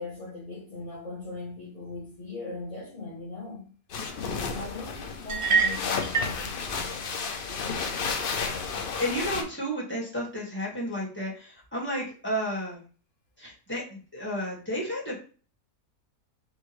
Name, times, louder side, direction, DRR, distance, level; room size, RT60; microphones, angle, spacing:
voice 1, 0.0-3.7 4.5-6.5, left 3 dB, 30° left, 0.8 m, -39 dB
sound 1, 3.9-9.4, left 5 dB, 85° left, 0.4 m, -32 dB
sound 2, 5.3-6.4, right 5 dB, 50° right, 0.8 m, -25 dB
voice 2, 8.7-12.8 13.4-15.2, equal, 5° left, 1.6 m, -32 dB
5.5 x 2.6 x 3.1 m
omnidirectional pair, 1.7 m